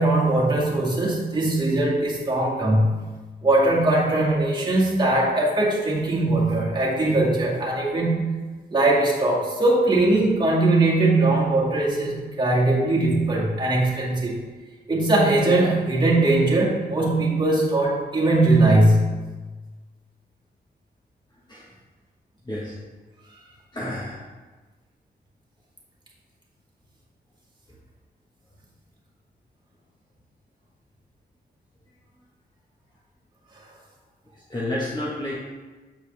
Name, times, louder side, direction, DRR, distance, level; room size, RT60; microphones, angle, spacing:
voice 1, 0.0-3.1 3.4-8.4 8.7-14.3 14.9-19.2, right 2 dB, 25° right, -5 dB, 2.0 m, -20 dB
voice 2, 22.4-22.8 23.7-24.2 34.3-35.5, left 1 dB, 25° left, -6 dB, 1.4 m, -30 dB
7.8 x 4.6 x 3.4 m, 1.3 s
cardioid pair, 65°, 17 cm